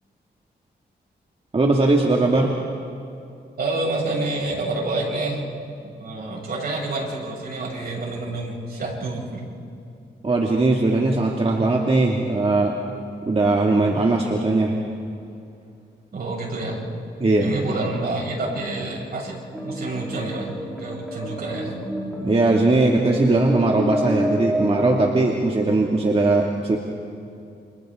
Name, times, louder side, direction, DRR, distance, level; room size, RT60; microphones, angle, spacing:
voice 1, 1.5-2.6 10.2-12.8 13.3-14.8 17.2-17.5 22.2-26.8, right 2 dB, 35° right, -1 dB, 2.3 m, -19 dB
voice 2, 3.6-5.5 5.8-9.4 16.1-16.8 17.4-19.4 19.6-20.5 20.8-21.8, right 2 dB, 60° right, -4 dB, 7.4 m, -28 dB
sound 1, 19.5-25.0, equal, ahead, 4.0 m, -28 dB
30.0 x 29.0 x 3.8 m, 2.5 s
cardioid pair, 80°, 18 cm